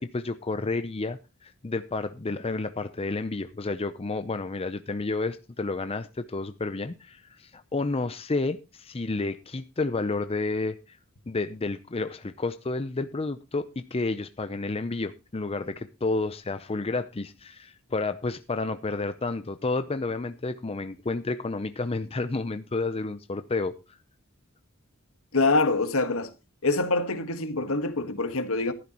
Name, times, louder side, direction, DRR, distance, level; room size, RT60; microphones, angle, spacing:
voice 1, 0.0-11.0 11.3-24.0, left 3 dB, 30° left, 0.6 m, -31 dB
voice 2, 25.3-26.3 26.6-28.7, left 3 dB, 70° left, 1.6 m, -25 dB
14.5 x 12.0 x 3.0 m
head